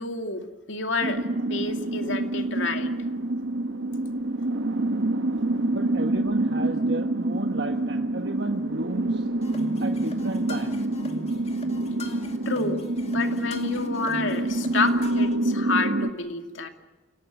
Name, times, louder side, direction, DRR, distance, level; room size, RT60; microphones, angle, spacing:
voice 1, 0.0-2.9 12.5-16.7, left 3 dB, 85° left, 5 dB, 2.5 m, -29 dB
sound 1, 1.0-16.1, right 2 dB, 85° right, 1.1 m, -27 dB
voice 2, 5.7-9.3 9.8-10.9, right 2 dB, 60° right, 4 dB, 1.3 m, -33 dB
sound 2, 9.4-15.4, left 2 dB, 35° left, 2.4 m, -40 dB
27.5 x 18.5 x 9.3 m, 1.2 s
head